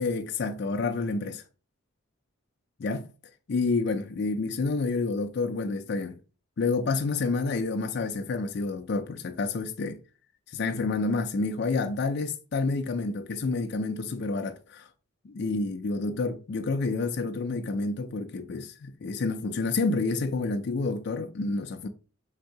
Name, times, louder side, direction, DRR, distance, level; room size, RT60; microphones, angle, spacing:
voice 1, 0.0-1.4 2.8-3.1 3.5-6.1 6.6-10.0 10.5-14.9 15.2-21.9, left 3 dB, 50° left, 0.4 m, -29 dB
3.5 x 2.7 x 4.7 m
head